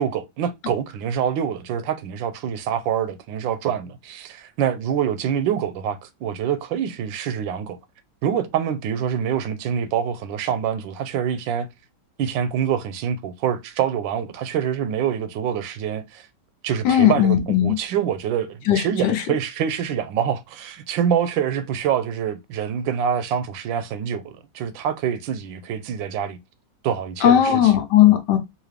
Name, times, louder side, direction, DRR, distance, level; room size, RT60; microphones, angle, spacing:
voice 1, 0.0-7.8 8.2-11.7 12.2-16.3 16.6-26.4 26.8-27.7, right 8 dB, 80° right, 1.3 m, -25 dB
voice 2, 16.8-17.8 18.7-19.2 27.2-28.4, left 11 dB, 70° left, 1.3 m, -17 dB
4.0 x 2.8 x 3.2 m
omnidirectional pair, 2.0 m